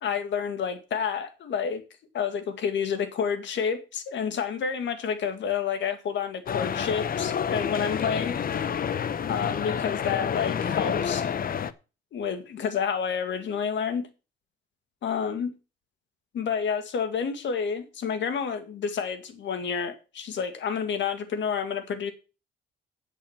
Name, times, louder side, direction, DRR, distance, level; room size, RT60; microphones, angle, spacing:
voice 1, 0.0-1.8 2.1-8.4 9.3-11.3 12.1-14.1 15.0-15.5 16.3-22.1, left 7 dB, 70° left, 2.0 m, -29 dB
sound 1, 6.5-11.7, left 7 dB, 45° left, 0.8 m, -29 dB
8.9 x 8.3 x 5.8 m
cardioid pair, 90°, 20 cm